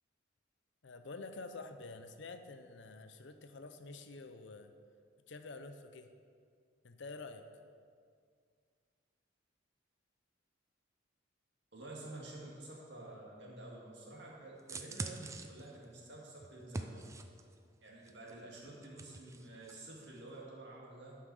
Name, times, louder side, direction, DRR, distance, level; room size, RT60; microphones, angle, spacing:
voice 1, 0.8-4.7 5.3-6.1 6.8-7.5, left 3 dB, 65° left, 8 dB, 0.6 m, -48 dB
voice 2, 11.7-17.0 17.8-21.2, right 2 dB, 60° right, -3 dB, 1.9 m, -50 dB
sound 1, 14.6-17.6 18.1-19.8 20.0-20.2, right 2 dB, 15° right, 0.3 m, -44 dB
11.5 x 5.6 x 4.8 m, 2.2 s
head